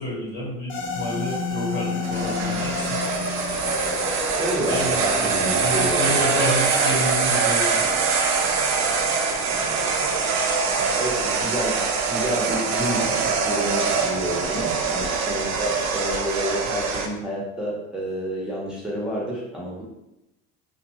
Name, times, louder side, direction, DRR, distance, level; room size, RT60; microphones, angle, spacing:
voice 1, 0.0-3.0 4.7-7.8, left 1 dB, 80° left, -4 dB, 1.3 m, -29 dB
sound 1, 0.7-9.2, left 4 dB, 35° left, 0.6 m, -32 dB
sound 2, 2.0-17.1, right 5 dB, 50° right, 0.5 m, -23 dB
voice 2, 4.4-6.1 9.4-10.0 11.0-19.8, equal, ahead, -5 dB, 0.7 m, -29 dB
2.4 x 2.3 x 2.9 m, 0.91 s
supercardioid pair, 95°, 34 cm